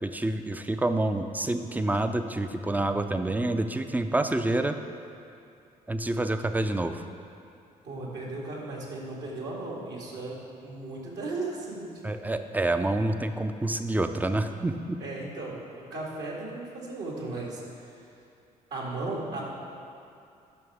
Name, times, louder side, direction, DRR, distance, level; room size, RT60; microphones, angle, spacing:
voice 1, 0.0-4.8 5.9-7.0 12.0-15.0, right 2 dB, 10° right, 8 dB, 0.5 m, -28 dB
voice 2, 7.8-11.9 15.0-17.9 18.7-19.5, right 2 dB, 60° right, -3 dB, 1.9 m, -36 dB
11.0 x 6.0 x 3.5 m, 2.5 s
figure-of-eight pair, 45°, 20 cm